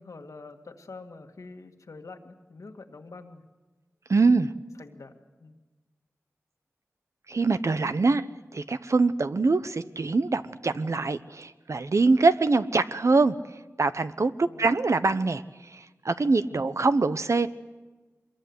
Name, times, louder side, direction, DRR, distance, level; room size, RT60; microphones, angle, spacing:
voice 1, 0.0-3.4 4.8-5.1 5.4-5.6 14.4-14.7 16.6-16.7, left 3 dB, 85° left, 4 dB, 2.0 m, -45 dB
voice 2, 4.1-4.5 7.3-8.3 8.5-17.5, right 3 dB, 65° right, 12 dB, 1.0 m, -24 dB
24.5 x 22.0 x 8.0 m, 1.2 s
wide cardioid pair, 60°, 5 cm